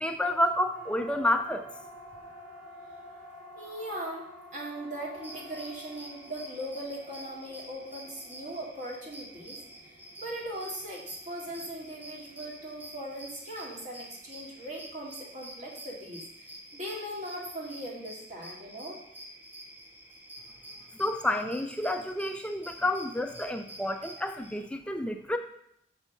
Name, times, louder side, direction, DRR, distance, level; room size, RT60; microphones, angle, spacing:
voice 1, 0.0-1.7 21.0-25.4, left 1 dB, 5° left, 6 dB, 0.4 m, -29 dB
Siren, 0.7-15.0, equal, 75° right, 2.9 m, -51 dB
voice 2, 3.6-4.3 4.5-9.6 10.2-19.0, right 1 dB, 45° right, -3 dB, 2.3 m, -39 dB
sound 1, 5.1-24.6, right 1 dB, 10° right, 1.2 m, -48 dB
6.5 x 5.6 x 6.3 m, 0.74 s
head